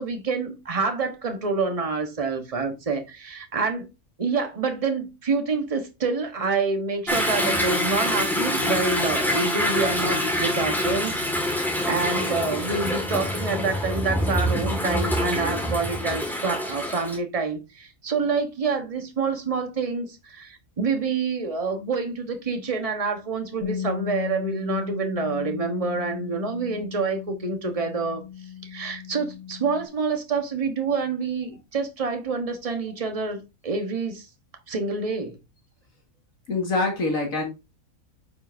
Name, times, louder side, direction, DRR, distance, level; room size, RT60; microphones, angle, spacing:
voice 1, 0.0-3.9 4.2-28.2 28.6-34.3 34.7-35.4, right 4 dB, 25° right, 1.2 m, -27 dB
Toilet flush / Drip / Trickle dribble, 7.1-17.2, left 1 dB, ahead, 1.8 m, -25 dB
Bass guitar, 23.6-29.9, left 10 dB, 50° left, 1.8 m, -35 dB
voice 2, 36.5-37.4, left 3 dB, 75° left, 2.4 m, -24 dB
9.5 x 5.5 x 2.7 m
omnidirectional pair, 1.4 m